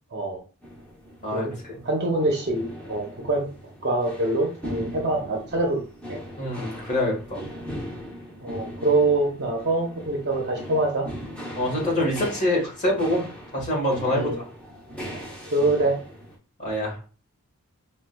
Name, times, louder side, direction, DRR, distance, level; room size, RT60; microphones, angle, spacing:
sound 1, 0.6-16.4, equal, 5° left, 0.7 m, -39 dB
voice 1, 1.2-1.8 6.4-7.4 11.5-13.3 13.5-14.4 16.6-17.0, left 1 dB, 35° left, -2 dB, 1.3 m, -25 dB
voice 2, 1.8-3.5 3.8-5.8 6.1-6.2 8.4-11.1 14.1-14.4 15.5-16.0, right 2 dB, 50° right, 0 dB, 0.7 m, -24 dB
4.6 x 2.2 x 2.2 m, 0.36 s
head